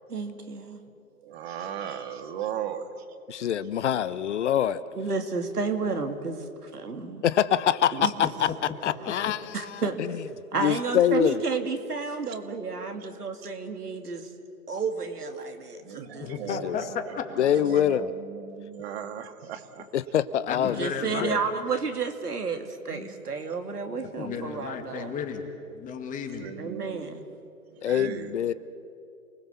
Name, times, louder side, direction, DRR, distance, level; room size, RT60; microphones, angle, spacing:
voice 1, 0.1-0.8 1.9-2.0 4.9-7.2 7.9-8.3 9.5-10.0 10.5-14.3 14.7-16.3 17.6-17.7 20.6-25.1 26.6-27.2, right 4 dB, 85° right, 5 dB, 2.7 m, -31 dB
voice 2, 1.2-3.1 12.3-12.4 13.4-13.5 15.8-17.2 17.5-19.9 22.9-23.2 23.9-24.1 26.4-27.2 27.7-28.5, right 9 dB, 45° right, 8 dB, 2.0 m, -38 dB
voice 3, 3.3-4.8 7.2-8.1 8.4-8.5 8.8-10.1 10.6-11.4 16.6-16.8 17.4-18.1 19.9-20.8 21.2-21.4 27.8-28.5, left 10 dB, 50° left, 15 dB, 0.9 m, -25 dB
voice 4, 16.2-17.0 20.5-21.4 24.2-25.5 25.7-26.5, left 6 dB, 15° left, 5 dB, 2.1 m, -33 dB
29.0 x 20.0 x 7.1 m, 2.5 s
hypercardioid pair, 135°, 45 cm